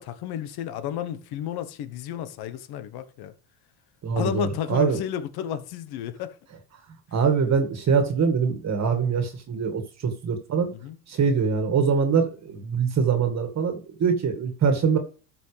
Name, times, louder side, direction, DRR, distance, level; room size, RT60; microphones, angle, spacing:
voice 1, 0.0-3.3 4.1-6.4 10.7-11.0, left 10 dB, 50° left, 1.3 m, -32 dB
voice 2, 4.0-5.0 7.1-10.7 11.1-15.0, right 6 dB, 35° right, 2.0 m, -23 dB
13.0 x 6.3 x 3.4 m
supercardioid pair, 110°, 47 cm